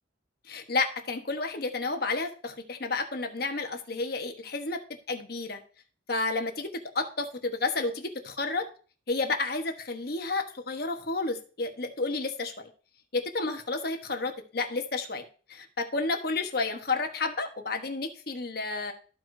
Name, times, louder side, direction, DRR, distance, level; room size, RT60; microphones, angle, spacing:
voice 1, 0.5-4.8 5.1-5.6 6.1-8.6 9.1-12.7 13.1-15.2 15.5-18.9, left 3 dB, 55° left, 4 dB, 1.1 m, -31 dB
14.0 x 4.7 x 2.7 m, 0.39 s
head